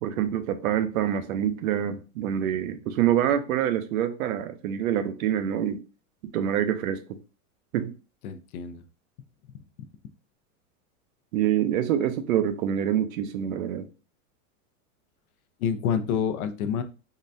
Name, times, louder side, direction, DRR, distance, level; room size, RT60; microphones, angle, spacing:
voice 1, 0.0-5.8 6.3-7.0 7.7-7.9 11.3-13.9, right 10 dB, 70° right, 0.6 m, -26 dB
voice 2, 8.2-8.8 15.6-16.8, left 7 dB, 90° left, 0.6 m, -28 dB
3.7 x 2.2 x 2.6 m
supercardioid pair, 170°, 43 cm